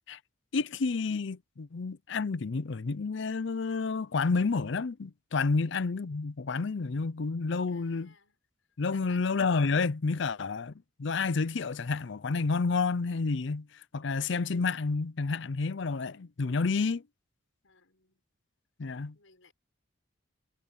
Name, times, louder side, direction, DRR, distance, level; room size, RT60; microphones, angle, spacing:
voice 1, 0.5-8.1 8.8-10.7 11.0-13.7 13.9-17.0 18.8-19.1, left 4 dB, 60° left, 0.5 m, -30 dB
voice 2, 7.7-8.4 8.9-9.3 17.6-18.2 19.1-19.5, left 4 dB, 75° left, 5.5 m, -59 dB
head